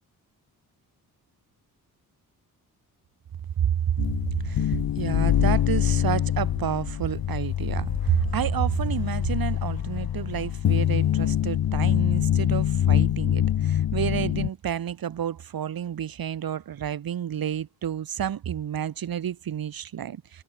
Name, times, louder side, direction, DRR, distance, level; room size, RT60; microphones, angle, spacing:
voice 1, 3.6-4.0 4.4-20.4, right 9 dB, 75° right, 5.3 m, -29 dB
sound 1, 4.0-14.5, left 11 dB, 80° left, 3.7 m, -25 dB
cardioid pair, 80°, 36 cm